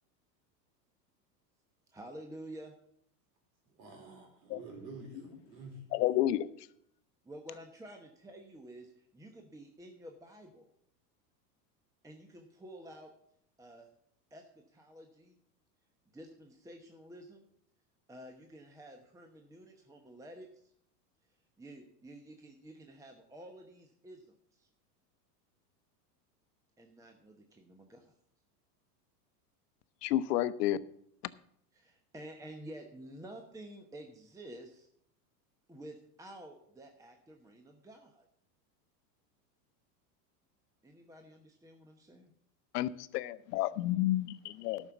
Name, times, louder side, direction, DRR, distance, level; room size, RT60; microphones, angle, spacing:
voice 1, 1.9-2.8 7.2-10.7 12.0-13.1 13.6-13.9 14.3-15.4 16.1-17.4 18.1-20.7 21.6-24.7 26.8-28.1 31.7-34.9 35.7-38.3 40.8-42.3, right 1 dB, 5° right, 1.0 m, -50 dB
voice 2, 3.7-5.9, right 3 dB, 75° right, 4.4 m, -49 dB
voice 3, 5.9-6.5 30.0-30.8 42.7-44.3 44.6-44.8, left 14 dB, 70° left, 0.8 m, -30 dB
12.0 x 6.4 x 6.9 m
supercardioid pair, 115°, 49 cm